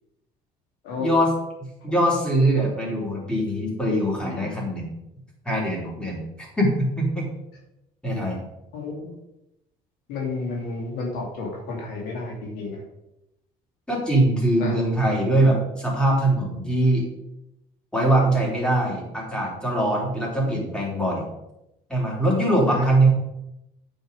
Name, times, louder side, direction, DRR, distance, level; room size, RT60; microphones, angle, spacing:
voice 1, 1.0-1.3 1.6-4.9 5.4-7.3 8.0-8.4 13.9-17.1 17.9-21.3 21.9-23.1, right 1 dB, 5° left, -3 dB, 3.3 m, -22 dB
voice 2, 8.7-9.2 10.1-12.8 14.6-14.7 20.4-20.6 22.7-22.8, left 3 dB, 90° left, -1 dB, 2.5 m, -31 dB
8.8 x 5.5 x 5.2 m, 0.88 s
cardioid pair, 115°, 16 cm